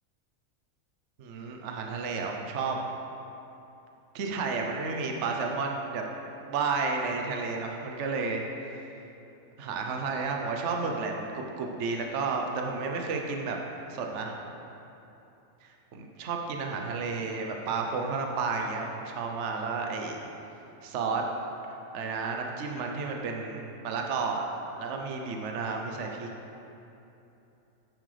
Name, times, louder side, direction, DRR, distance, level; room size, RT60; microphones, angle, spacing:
voice 1, 1.2-2.8 4.1-6.0 6.5-8.4 9.6-13.6 13.9-14.4 15.6-20.3 20.8-21.3 21.7-24.4 24.8-26.3, right 4 dB, 65° right, 2 dB, 1.0 m, -32 dB
9.7 x 7.5 x 3.3 m, 2.9 s
omnidirectional pair, 1.4 m